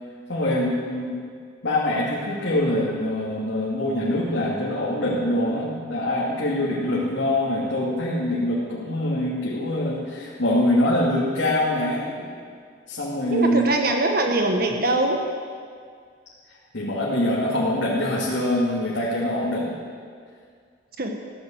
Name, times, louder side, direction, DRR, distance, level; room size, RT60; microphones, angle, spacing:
voice 1, 0.3-1.1 1.6-12.0 12.9-13.7 16.7-19.8, left 1 dB, 80° left, -7 dB, 2.7 m, -24 dB
voice 2, 13.3-15.2 21.0-21.1, right 2 dB, 50° right, 3 dB, 1.5 m, -22 dB
16.0 x 10.5 x 8.0 m, 2.1 s
head